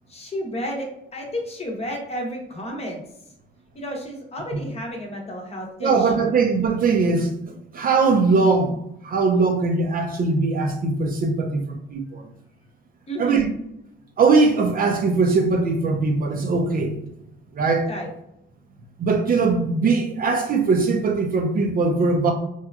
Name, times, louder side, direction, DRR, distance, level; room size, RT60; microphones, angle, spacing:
voice 1, 0.1-3.0 3.7-6.4 13.1-13.5 17.9-18.1, equal, 30° left, 0 dB, 0.7 m, -32 dB
voice 2, 5.8-7.3 7.7-8.8 9.0-12.3 13.2-13.5 14.2-17.0 17.5-17.9 19.0-22.3, right 4 dB, 45° right, 4 dB, 0.4 m, -20 dB
2.8 x 2.3 x 2.3 m, 0.81 s
cardioid pair, 90°, 20 cm